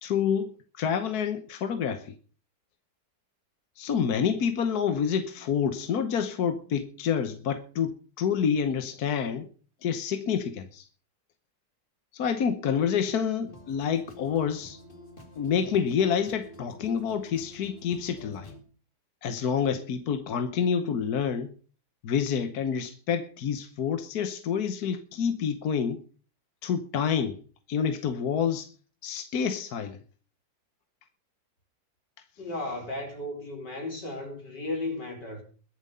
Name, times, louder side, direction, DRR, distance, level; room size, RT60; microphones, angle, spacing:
voice 1, 0.0-0.5 0.8-2.1 3.8-9.5 9.8-10.8 12.1-14.8 15.4-18.5 19.2-21.5 22.0-26.0 26.6-27.4 27.7-28.7 29.0-30.0, left 7 dB, 65° left, 1.5 m, -28 dB
sound 1, 13.5-18.6, left 1 dB, 30° left, 2.5 m, -49 dB
voice 2, 32.4-35.4, left 2 dB, 85° left, 4.8 m, -35 dB
22.0 x 7.4 x 5.5 m
omnidirectional pair, 1.8 m